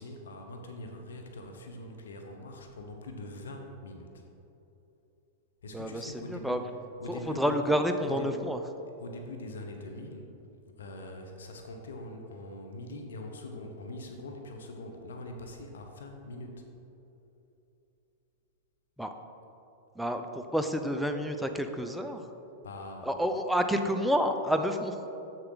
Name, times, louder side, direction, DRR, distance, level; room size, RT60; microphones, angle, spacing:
voice 1, 0.0-4.2 5.6-6.7 7.0-7.7 8.0-8.4 9.0-10.3 10.6-16.7 22.6-23.1, left 1 dB, 85° left, 3 dB, 0.9 m, -43 dB
voice 2, 5.7-6.6 7.1-8.6 19.0-19.1 20.0-22.2 23.0-25.1, equal, ahead, 6 dB, 0.5 m, -29 dB
7.1 x 6.5 x 4.0 m, 3.0 s
hypercardioid pair, 115°, 0 cm